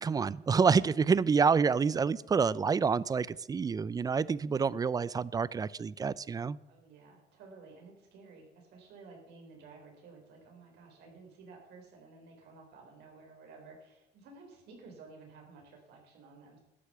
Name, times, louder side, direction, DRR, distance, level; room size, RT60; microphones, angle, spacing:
voice 1, 0.0-6.6, right 5 dB, 20° right, 21 dB, 0.4 m, -28 dB
voice 2, 6.7-16.6, right 4 dB, 80° right, 1 dB, 4.1 m, -53 dB
12.5 x 8.3 x 6.7 m, 0.91 s
cardioid pair, 110°, 17 cm